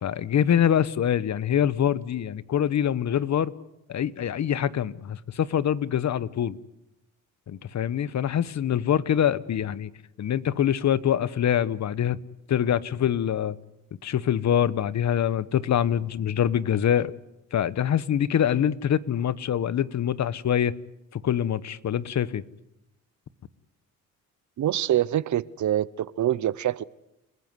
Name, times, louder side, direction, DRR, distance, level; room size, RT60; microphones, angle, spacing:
voice 1, 0.0-3.5 3.9-6.6 7.5-9.9 10.2-12.2 12.5-13.6 14.0-17.1 17.5-20.7 21.1-22.4, left 9 dB, 55° left, 1.0 m, -24 dB
voice 2, 24.6-26.8, right 12 dB, 60° right, 0.8 m, -25 dB
28.5 x 15.0 x 9.6 m
cardioid pair, 85°, 33 cm